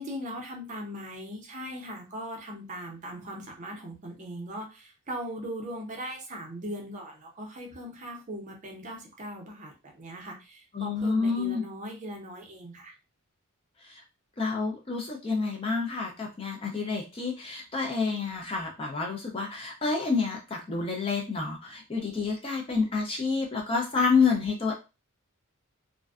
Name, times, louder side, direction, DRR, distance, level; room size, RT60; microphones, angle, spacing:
voice 1, 0.0-12.9, equal, 35° right, 1 dB, 0.6 m, -39 dB
voice 2, 10.7-11.6 13.8-14.0 14.4-24.7, left 4 dB, 25° left, 0 dB, 0.4 m, -28 dB
2.5 x 2.2 x 2.3 m, 0.29 s
head